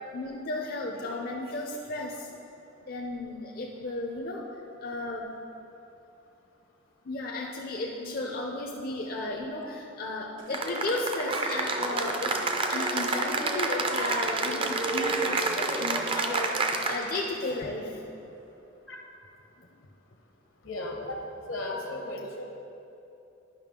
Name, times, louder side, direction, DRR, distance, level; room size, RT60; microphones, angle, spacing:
voice 1, 0.1-2.4 2.9-4.4 4.8-5.3 7.0-18.2 19.6-19.7 21.8-21.9, left 2 dB, 50° left, -1 dB, 0.5 m, -34 dB
sound 1, 10.4-18.6, right 1 dB, 70° right, 0.8 m, -43 dB
Cheering / Applause, 10.5-17.3, right 3 dB, 25° right, 0.5 m, -29 dB
voice 2, 20.6-21.2 21.5-22.4, left 2 dB, 75° left, 1 dB, 1.0 m, -35 dB
10.5 x 5.6 x 3.7 m, 2.9 s
head